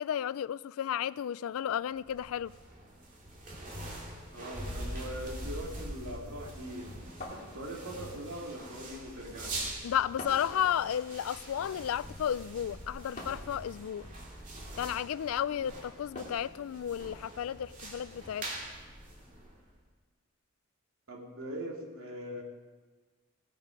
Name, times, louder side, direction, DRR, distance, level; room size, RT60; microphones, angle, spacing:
voice 1, 0.0-2.5 9.8-14.1 14.8-18.5, left 9 dB, 80° left, 0.3 m, -33 dB
sound 1, 1.9-19.8, right 1 dB, 35° right, 2.3 m, -44 dB
voice 2, 4.3-6.9 7.3-9.6 21.1-22.4, right 1 dB, 80° right, 2.4 m, -41 dB
sound 2, 7.2-8.1 10.2-10.6 13.2-13.6 16.2-16.6, left 1 dB, 35° left, 2.5 m, -44 dB
17.5 x 8.3 x 5.2 m
head